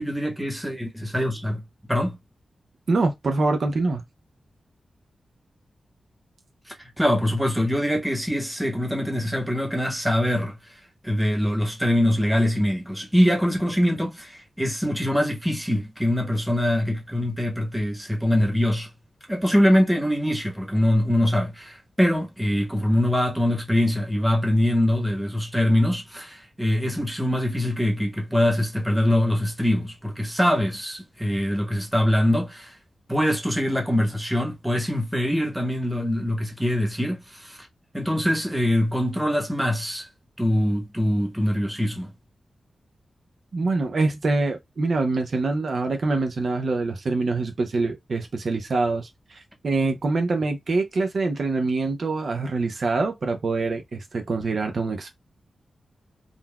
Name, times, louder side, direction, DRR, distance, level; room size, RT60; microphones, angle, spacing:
voice 1, 0.0-1.6 1.9-2.2 6.8-10.7 11.0-18.9 19.3-32.8 33.1-37.7 37.9-40.1 40.4-42.1, left 1 dB, 5° right, 1.0 m, -23 dB
voice 2, 2.9-4.0 43.5-55.1, right 3 dB, 60° right, 0.5 m, -25 dB
3.7 x 2.2 x 2.2 m
wide cardioid pair, 95°, 0 cm